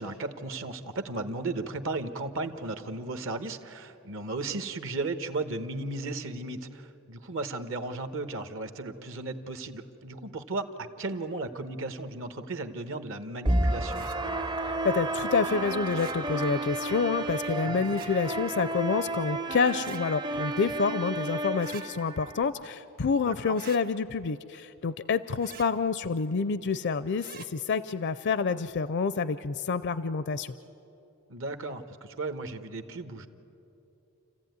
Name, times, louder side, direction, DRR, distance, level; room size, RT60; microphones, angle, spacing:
voice 1, 0.0-10.7 11.0-14.1 17.6-17.9 23.2-23.5 31.3-33.3, right 2 dB, 65° right, 9 dB, 1.2 m, -35 dB
sound 1, 13.4-22.4, right 2 dB, 20° right, 0.5 m, -31 dB
sound 2, 13.9-14.2 15.8-16.2 17.8-18.1 19.7-20.0 21.6-21.8 23.5-23.8 25.4-25.7 27.2-27.5, right 6 dB, 45° right, 1.1 m, -45 dB
voice 2, 14.8-30.5, left 5 dB, 55° left, 14 dB, 0.5 m, -28 dB
29.0 x 15.0 x 9.4 m, 3.0 s
head